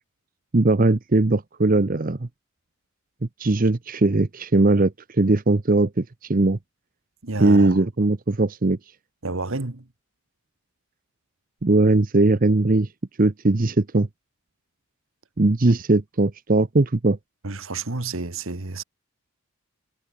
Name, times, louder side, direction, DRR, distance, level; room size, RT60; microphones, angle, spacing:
voice 1, 0.5-2.3 3.4-6.6 7.4-8.8 11.6-12.9 13.2-14.1 15.4-17.2, right 2 dB, 40° right, 0.7 m, -19 dB
voice 2, 7.2-7.8 9.2-9.9 17.4-18.8, right 3 dB, 60° right, 1.5 m, -30 dB
head